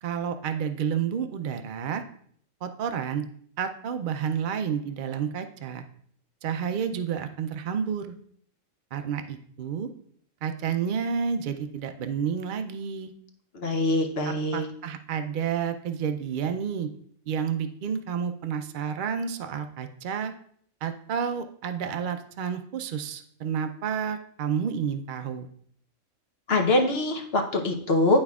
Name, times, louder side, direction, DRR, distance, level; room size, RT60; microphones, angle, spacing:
voice 1, 0.0-2.0 2.6-3.2 3.6-5.8 6.4-8.1 8.9-9.9 10.4-13.1 14.2-16.9 17.3-20.3 20.8-25.5, right 7 dB, 80° right, 8 dB, 0.4 m, -30 dB
voice 2, 13.5-14.7 26.5-28.2, left 2 dB, 55° left, 3 dB, 0.9 m, -23 dB
11.0 x 4.3 x 2.3 m, 0.62 s
omnidirectional pair, 1.4 m